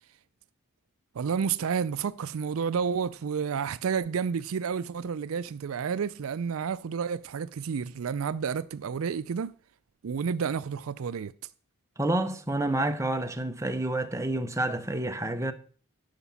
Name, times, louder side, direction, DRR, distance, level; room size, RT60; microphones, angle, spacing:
voice 1, 1.1-9.5 10.0-11.3, right 6 dB, 75° right, 0.4 m, -30 dB
voice 2, 12.0-15.5, right 1 dB, 15° right, 0.9 m, -29 dB
11.5 x 5.9 x 7.0 m
head